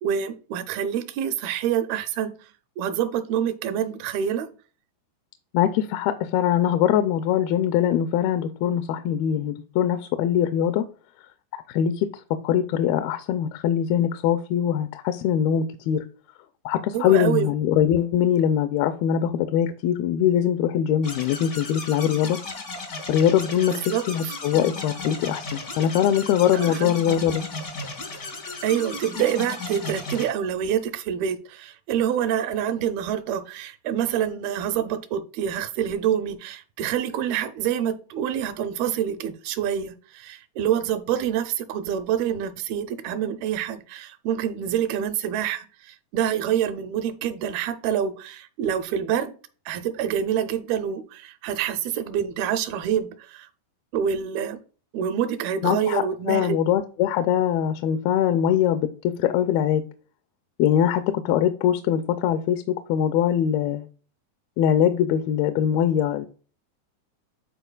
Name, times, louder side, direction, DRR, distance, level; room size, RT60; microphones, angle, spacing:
voice 1, 0.0-2.4 2.8-4.5 16.9-17.5 23.7-24.3 26.5-26.9 28.6-49.3 49.7-53.5 53.9-54.6 54.9-56.6, right 9 dB, 80° right, 2.5 m, -26 dB
voice 2, 5.5-10.9 11.5-12.1 12.4-16.0 16.7-22.4 23.1-27.4 55.6-59.8 60.6-63.9 64.6-66.3, left 10 dB, 80° left, 2.4 m, -22 dB
sound 1, 21.0-30.3, left 3 dB, 65° left, 0.9 m, -35 dB
12.0 x 4.3 x 2.3 m
omnidirectional pair, 4.5 m